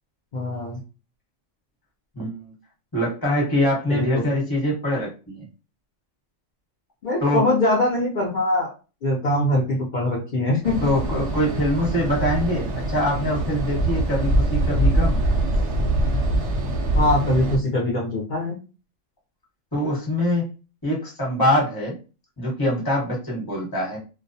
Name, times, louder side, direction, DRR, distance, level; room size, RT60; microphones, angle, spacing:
voice 1, 0.3-0.8 3.9-4.2 7.0-8.7 9.0-10.9 16.9-18.5, left 1 dB, 60° left, -4 dB, 0.5 m, -22 dB
voice 2, 2.1-2.5 2.9-5.5 7.2-7.5 10.8-15.2 19.7-20.5 20.8-22.0 22.4-24.0, left 1 dB, 20° left, -4 dB, 0.9 m, -23 dB
sound 1, 10.6-17.6, right 1 dB, 65° right, 0.8 m, -23 dB
2.3 x 2.1 x 2.6 m, 0.32 s
omnidirectional pair, 1.5 m